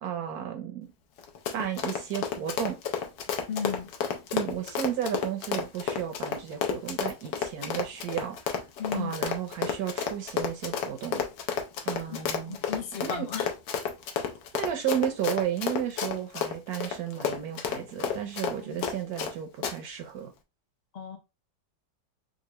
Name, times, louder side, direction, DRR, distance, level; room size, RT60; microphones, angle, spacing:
voice 1, 0.0-0.9 1.5-2.8 4.3-8.4 8.9-11.2 11.8-12.6 13.0-13.3 14.5-20.3, right 10 dB, 70° right, 1.0 m, -33 dB
Run, 1.2-19.3 19.6-19.7, left 7 dB, 80° left, 1.3 m, -31 dB
voice 2, 3.5-3.9 8.8-9.2 12.1-13.5 18.7-18.9 20.9-21.2, left 6 dB, 50° left, 0.5 m, -35 dB
3.9 x 2.4 x 3.0 m
omnidirectional pair, 1.9 m